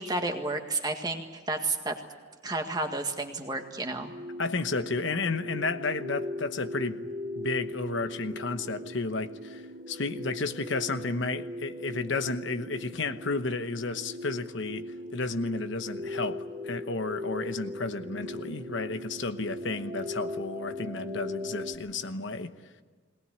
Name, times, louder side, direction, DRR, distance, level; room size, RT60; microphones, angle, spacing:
voice 1, 0.0-2.0 2.4-4.1, right 2 dB, 20° right, 1.8 m, -31 dB
sound 1, 3.5-21.8, left 1 dB, 40° right, 2.7 m, -39 dB
voice 2, 4.4-7.1 7.4-22.5, left 3 dB, 70° left, 1.0 m, -32 dB
21.5 x 19.0 x 9.6 m
head